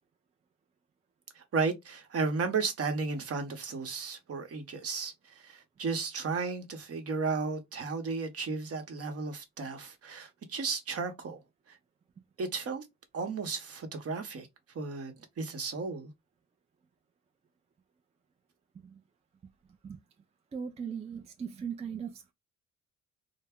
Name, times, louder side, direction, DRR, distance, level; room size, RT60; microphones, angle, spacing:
voice 1, 1.3-11.4 11.7-11.8 12.4-12.9 13.1-14.5 14.7-16.1, right 4 dB, 50° right, 0.9 m, -34 dB
voice 2, 20.5-22.3, right 7 dB, 20° right, 0.3 m, -38 dB
2.2 x 2.0 x 3.4 m
cardioid pair, 90°, 30 cm